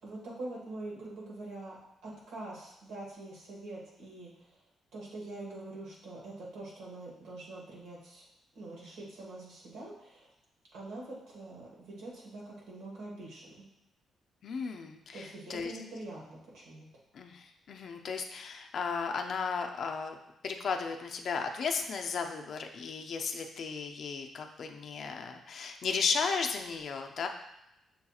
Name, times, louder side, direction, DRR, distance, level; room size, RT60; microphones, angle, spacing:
voice 1, 0.0-4.6 4.9-8.3 8.5-10.3 10.7-13.7 15.1-16.9, right 2 dB, 85° right, -4 dB, 1.4 m, -44 dB
voice 2, 14.4-15.7 17.1-20.2 20.4-27.3, left 5 dB, 65° left, 4 dB, 0.5 m, -35 dB
6.4 x 2.8 x 2.3 m, 0.87 s
cardioid pair, 75°, 0 cm